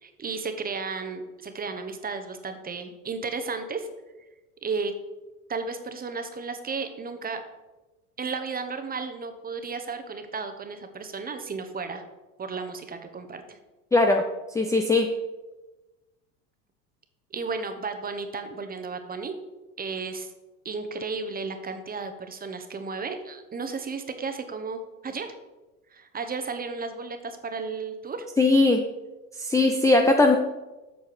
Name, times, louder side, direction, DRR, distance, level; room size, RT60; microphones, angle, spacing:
voice 1, 0.0-3.9 4.6-4.9 5.5-7.4 8.2-12.0 12.4-13.6 17.3-19.4 19.8-20.3 20.6-25.3 25.9-28.3, right 4 dB, 20° right, 7 dB, 1.1 m, -33 dB
voice 2, 13.9-14.2 14.5-15.1 28.4-28.9 29.4-30.4, left 2 dB, 5° left, 4 dB, 0.5 m, -19 dB
7.9 x 6.3 x 5.0 m, 1.1 s
hypercardioid pair, 90°, 44 cm